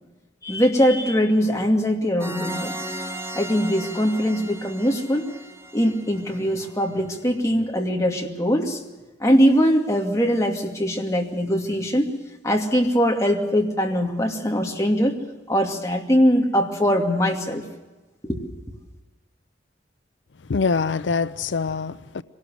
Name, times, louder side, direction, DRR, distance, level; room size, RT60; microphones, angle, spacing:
voice 1, 0.4-2.7 3.3-5.3 5.7-8.8 9.2-12.1 12.4-15.2 15.5-17.6 18.3-18.5, equal, 15° left, 2.5 m, -21 dB
sound 1, 2.2-6.9, right 1 dB, 15° right, 1.4 m, -35 dB
voice 2, 20.4-22.2, left 4 dB, 80° left, 0.6 m, -24 dB
24.5 x 19.0 x 6.4 m
head